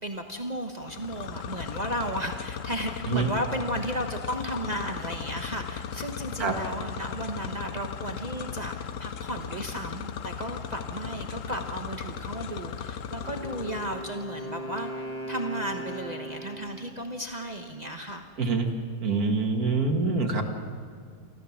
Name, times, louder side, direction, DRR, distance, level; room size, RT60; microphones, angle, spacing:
voice 1, 0.0-18.3, right 1 dB, 30° right, 3 dB, 1.2 m, -34 dB
sound 1, 0.8-14.2, left 7 dB, 65° left, 1.1 m, -37 dB
Wind instrument woodwind instrument, 13.2-17.0, equal, 10° left, 4.1 m, -38 dB
voice 2, 18.4-18.7 19.0-20.4, right 4 dB, 75° right, 3 dB, 2.3 m, -25 dB
28.0 x 13.5 x 7.3 m, 2.1 s
omnidirectional pair, 1.6 m